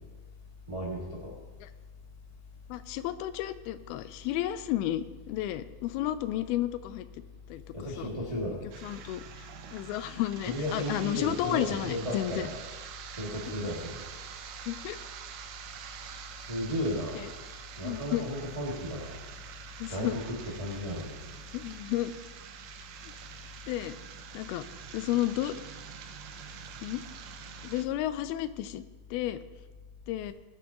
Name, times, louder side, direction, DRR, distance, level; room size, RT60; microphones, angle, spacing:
voice 1, 0.7-1.3 7.7-8.6 10.4-12.6 13.1-14.0 16.4-17.3 17.8-19.2 19.9-21.2, left 1 dB, 15° right, -5 dB, 1.4 m, -34 dB
voice 2, 2.7-7.1 7.5-7.6 8.0-8.1 8.8-9.2 9.7-12.5 14.7-15.0 17.2-17.3 17.8-18.3 19.8-20.2 21.5-22.1 23.7-24.0 24.3-24.7 24.9-25.6 26.8-27.0 27.6-28.8 29.1-29.4 30.1-30.3, left 13 dB, 85° left, 12 dB, 2.5 m, -32 dB
sound 1, 8.7-27.8, right 8 dB, 75° right, 2.1 m, -46 dB
20.0 x 8.9 x 3.0 m, 1.2 s
omnidirectional pair, 4.4 m